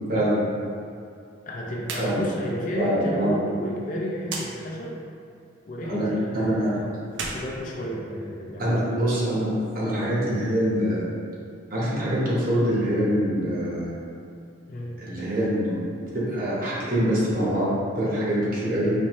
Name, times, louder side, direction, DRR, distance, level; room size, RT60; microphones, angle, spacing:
voice 1, 0.1-0.4 2.0-2.2 2.8-3.3 5.8-6.1 6.3-6.8 8.6-11.1 11.7-13.9 15.0-17.7 17.9-18.9, equal, 50° right, -7 dB, 1.0 m, -24 dB
voice 2, 1.5-4.9 5.7-9.0 14.7-14.9, equal, 45° left, -2 dB, 0.5 m, -31 dB
sound 1, 1.8-2.1 2.4-2.5 4.2-4.5 7.0-8.4, right 3 dB, 75° right, 0.5 m, -34 dB
4.3 x 2.7 x 3.0 m, 2.4 s
head